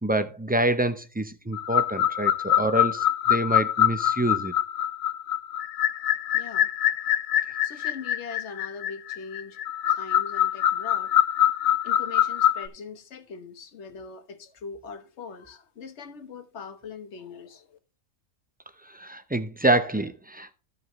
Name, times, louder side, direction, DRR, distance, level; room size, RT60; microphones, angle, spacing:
voice 1, 0.0-4.5 18.9-20.5, right 1 dB, 15° right, 0.4 m, -26 dB
sound 1, 1.5-12.7, left 11 dB, 85° left, 1.0 m, -24 dB
voice 2, 6.3-6.7 7.6-9.6 9.9-11.1 11.8-17.8, left 5 dB, 60° left, 1.3 m, -41 dB
14.5 x 5.4 x 3.0 m
omnidirectional pair, 1.4 m